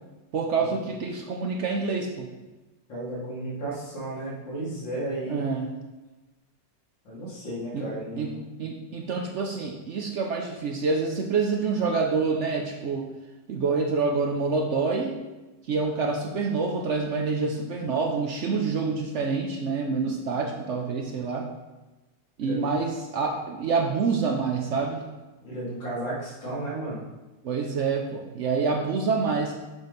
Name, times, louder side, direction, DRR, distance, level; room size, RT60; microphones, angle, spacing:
voice 1, 0.3-2.3 5.3-5.7 7.7-7.9 8.2-13.1 13.5-15.2 15.7-21.5 22.4-25.1 27.4-29.6, right 4 dB, 75° right, 2 dB, 0.6 m, -27 dB
voice 2, 2.9-5.4 7.0-8.5 22.4-22.7 25.4-27.0, right 1 dB, 85° left, -7 dB, 2.9 m, -33 dB
7.1 x 3.9 x 5.2 m, 1.1 s
omnidirectional pair, 1.9 m